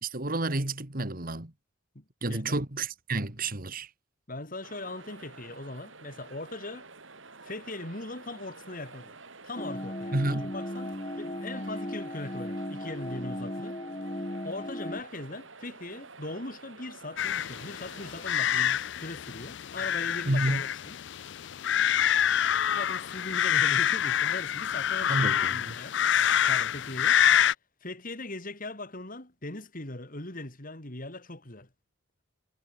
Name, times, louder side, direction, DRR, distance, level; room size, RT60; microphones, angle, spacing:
voice 1, 0.0-1.5 2.2-3.9 10.1-10.5 20.3-20.6 25.1-25.8, right 2 dB, 45° right, 2.3 m, -30 dB
voice 2, 2.0-2.6 4.3-6.9 7.4-9.2 9.4-13.8 14.4-20.9 22.8-25.9 26.5-27.2 27.8-31.7, left 2 dB, 45° left, 3.4 m, -40 dB
sound 1, 4.6-18.4, right 4 dB, 75° right, 6.2 m, -49 dB
sound 2, 9.6-15.0, left 1 dB, 30° left, 5.0 m, -36 dB
sound 3, 17.2-27.5, left 9 dB, 60° left, 0.5 m, -26 dB
head